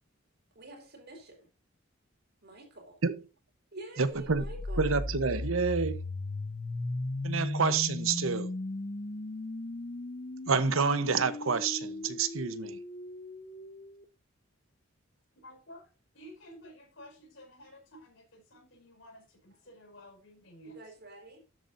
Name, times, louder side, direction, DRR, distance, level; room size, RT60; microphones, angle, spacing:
voice 1, 0.5-1.5 2.4-3.0 3.7-5.0 20.6-21.4, right 1 dB, 55° right, 4.3 m, -47 dB
voice 2, 4.0-4.5 4.8-6.0 7.2-8.5 10.5-12.8, right 5 dB, 85° right, 0.9 m, -28 dB
sound 1, 4.2-14.0, left 2 dB, 35° left, 0.6 m, -37 dB
voice 3, 15.4-15.8 16.1-21.0, equal, 70° left, 5.1 m, -52 dB
13.0 x 8.5 x 2.6 m
head